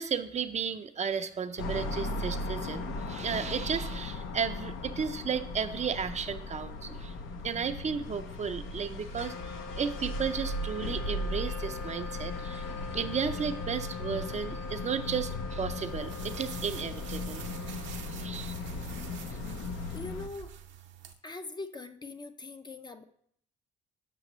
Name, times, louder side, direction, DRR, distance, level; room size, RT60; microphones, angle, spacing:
voice 1, 0.0-7.1 7.4-12.7 12.9-17.5 18.1-18.5, right 6 dB, 35° right, 9 dB, 0.4 m, -34 dB
sound 1, 1.6-20.3, left 2 dB, 80° left, 0.7 m, -37 dB
Wind instrument woodwind instrument, 9.0-18.6, left 3 dB, 50° left, 1.5 m, -45 dB
sound 2, 15.8-21.1, right 9 dB, 70° right, 0.6 m, -47 dB
voice 2, 19.9-20.5 21.2-23.0, left 3 dB, 20° left, 9 dB, 0.4 m, -42 dB
7.6 x 5.8 x 3.0 m, 0.67 s
cardioid pair, 90°, 20 cm